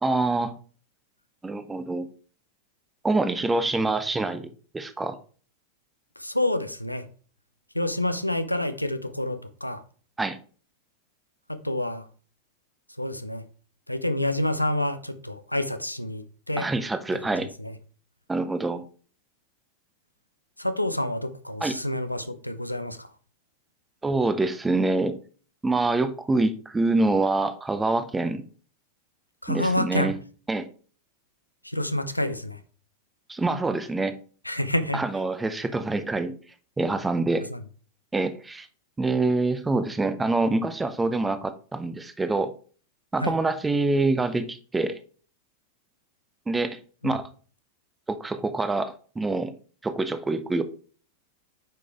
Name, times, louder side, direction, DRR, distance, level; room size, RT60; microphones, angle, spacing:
voice 1, 0.0-0.5 1.4-2.1 3.0-5.2 10.2-10.4 16.6-17.5 18.3-18.8 21.6-21.8 24.0-25.2 25.6-28.4 29.5-30.2 30.5-30.7 33.3-34.1 34.9-36.4 36.8-37.5 38.1-38.7 39.0-42.5 43.1-45.0 46.5-47.3 48.1-49.5 49.8-50.6, right 2 dB, 10° right, 0.7 m, -26 dB
voice 2, 6.2-7.1 7.7-9.8 11.5-12.1 13.0-13.4 13.9-16.7 17.6-17.7 20.6-23.1 29.4-30.1 31.6-32.6 34.4-35.0 37.5-37.6 43.2-43.3 47.0-47.1, left 1 dB, 85° left, 0.6 m, -28 dB
9.0 x 5.0 x 3.5 m
figure-of-eight pair, 90°, 0 cm